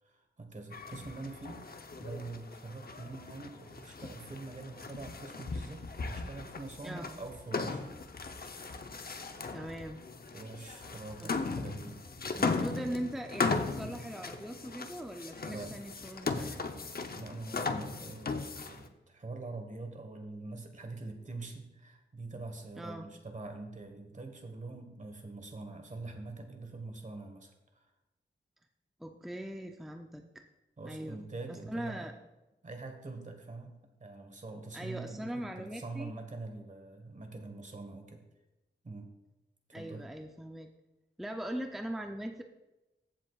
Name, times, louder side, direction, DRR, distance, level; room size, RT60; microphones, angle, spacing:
voice 1, 0.0-7.9 10.3-12.0 15.4-15.7 17.1-27.8 30.8-32.2 32.6-38.2 38.8-39.1 39.7-40.1, right 3 dB, 40° right, 5 dB, 1.4 m, -44 dB
sound 1, 0.7-18.9, left 4 dB, 50° left, 0.8 m, -38 dB
voice 2, 9.5-10.0 11.2-11.3 12.4-16.7 22.8-23.1 29.0-30.4 30.8-32.1 34.7-36.1 39.7-40.7 41.2-42.4, equal, ahead, 4 dB, 0.5 m, -40 dB
14.5 x 7.4 x 2.4 m, 1.0 s
wide cardioid pair, 100°, 20 cm